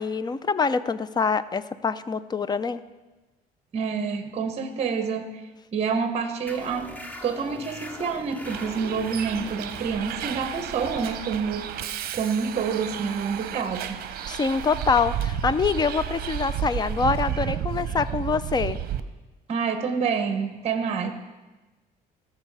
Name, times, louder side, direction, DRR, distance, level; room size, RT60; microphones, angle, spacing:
voice 1, 0.0-2.8 14.3-18.8, left 5 dB, 25° left, 15 dB, 0.5 m, -25 dB
voice 2, 3.7-5.3 5.7-6.9 7.2-11.7 12.1-14.0 19.5-21.1, right 6 dB, 40° right, 8 dB, 1.0 m, -27 dB
sound 1, 6.5-13.6, equal, 10° left, 1.1 m, -42 dB
Bus, 8.5-19.0, right 10 dB, 60° right, 0.8 m, -32 dB
17.0 x 6.6 x 4.8 m, 1.2 s
cardioid pair, 110°, 17 cm